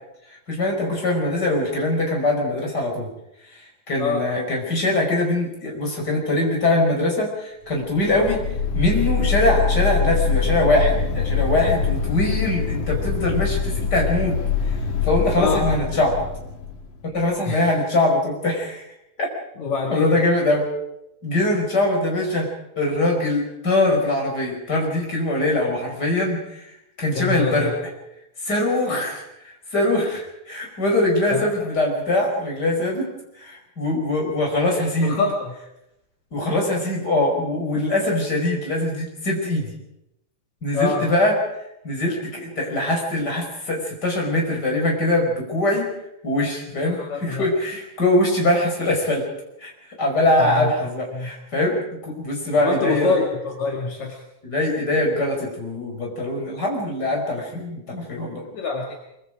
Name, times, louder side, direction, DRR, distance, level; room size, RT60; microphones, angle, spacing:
voice 1, 0.5-3.1 3.5-3.6 3.9-8.4 8.7-14.4 15.0-16.2 17.0-18.8 19.9-20.7 21.2-22.5 22.8-26.7 27.0-27.7 28.4-35.2 36.3-39.7 40.6-41.4 41.8-45.9 46.2-49.3 49.6-49.7 50.0-53.2 54.4-58.4, left 1 dB, 30° left, 0 dB, 6.1 m, -22 dB
voice 2, 3.9-4.3 15.3-15.7 17.4-17.8 19.6-20.1 27.1-27.7 31.3-31.5 35.0-35.5 40.7-41.0 46.8-47.5 50.4-50.7 51.1-51.3 52.5-54.2 58.5-59.0, left 4 dB, 65° left, 1 dB, 3.4 m, -25 dB
sound 1, 7.8-17.1, left 6 dB, 85° left, 3.3 m, -24 dB
24.0 x 24.0 x 5.1 m, 0.83 s
omnidirectional pair, 3.4 m